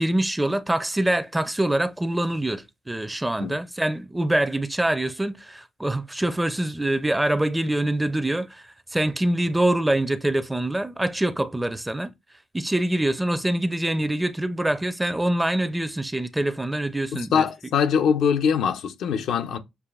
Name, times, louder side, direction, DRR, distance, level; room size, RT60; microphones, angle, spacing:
voice 1, 0.0-12.1 12.5-17.5, right 1 dB, 10° right, 0.6 m, -25 dB
voice 2, 17.3-19.6, left 7 dB, 75° left, 0.7 m, -22 dB
6.8 x 2.6 x 2.4 m
cardioid pair, 90°, 0 cm